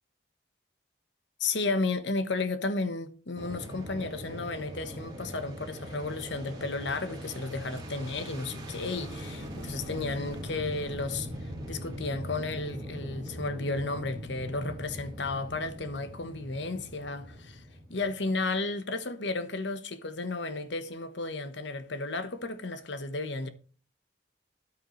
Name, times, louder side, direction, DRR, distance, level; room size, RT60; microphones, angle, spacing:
voice 1, 1.4-11.3 11.7-17.6 17.9-23.5, left 3 dB, 70° left, 1.2 m, -33 dB
Fixed-wing aircraft airplane, 3.4-18.5, equal, 20° right, 4.3 m, -41 dB
13.5 x 9.8 x 3.2 m
head